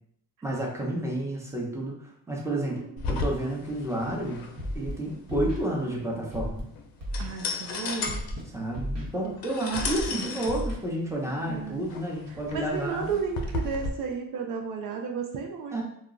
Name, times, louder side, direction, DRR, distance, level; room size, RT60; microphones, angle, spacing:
voice 1, 0.4-4.4 4.7-6.6 8.5-13.1 15.7-15.8, right 1 dB, 10° right, -2 dB, 0.8 m, -30 dB
voice 2, 2.5-3.0 7.2-8.2 10.1-10.6 11.5-11.8 12.5-15.8, right 5 dB, 65° right, 3 dB, 0.5 m, -33 dB
sound 1, 3.0-13.9, left 3 dB, 80° left, 0.5 m, -35 dB
Scratching (performance technique), 4.6-4.9 5.3-5.6 6.3-6.6 7.0-7.3 8.0-8.4 8.7-9.1 9.7-10.1 10.4-10.7, equal, 50° right, 0.9 m, -33 dB
2.2 x 2.0 x 3.7 m, 0.71 s
cardioid pair, 75°, 35 cm